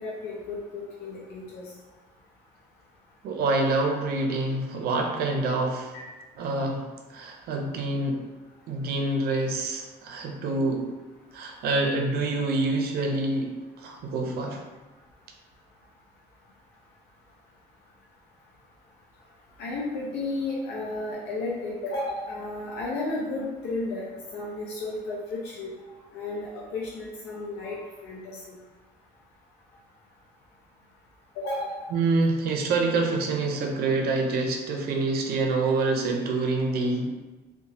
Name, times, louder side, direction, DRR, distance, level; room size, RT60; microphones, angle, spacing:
voice 1, 0.0-1.6 5.9-6.0 19.6-24.1 24.3-25.7 26.1-27.8 28.0-28.6 31.4-31.8, left 2 dB, 85° left, -4 dB, 0.5 m, -33 dB
voice 2, 3.2-5.9 6.4-8.2 8.7-10.9 11.3-13.5 13.8-14.6 31.9-37.1, right 3 dB, 65° right, 2 dB, 0.5 m, -26 dB
2.8 x 2.1 x 2.8 m, 1.2 s
cardioid pair, 110°, 17 cm